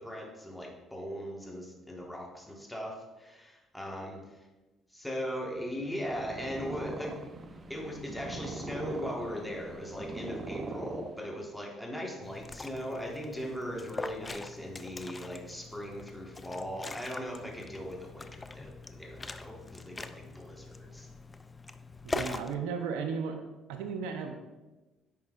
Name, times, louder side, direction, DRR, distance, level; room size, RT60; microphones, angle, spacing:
voice 1, 0.0-4.4 4.9-7.2 7.7-21.1, equal, 5° left, -1 dB, 1.5 m, -39 dB
Purr, 5.9-11.6, right 2 dB, 35° right, 0.7 m, -41 dB
Liquid, 12.2-22.5, left 3 dB, 25° left, 0.4 m, -42 dB
voice 2, 22.0-23.4 23.7-24.4, right 6 dB, 85° right, 5 dB, 0.6 m, -34 dB
9.4 x 5.3 x 2.5 m, 1.1 s
supercardioid pair, 70°, 0 cm